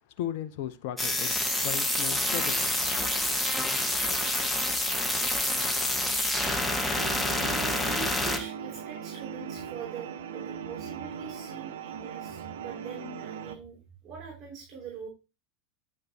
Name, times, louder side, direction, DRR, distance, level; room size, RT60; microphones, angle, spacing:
voice 1, 0.2-2.7, left 11 dB, 55° left, 0.8 m, -36 dB
sound 1, 1.0-8.4, left 1 dB, 5° left, 1.8 m, -27 dB
sound 2, 7.0-13.5, right 7 dB, 70° right, 1.0 m, -39 dB
voice 2, 7.3-15.1, right 6 dB, 40° right, 3.0 m, -43 dB
9.4 x 6.4 x 2.9 m
figure-of-eight pair, 85°, 0 cm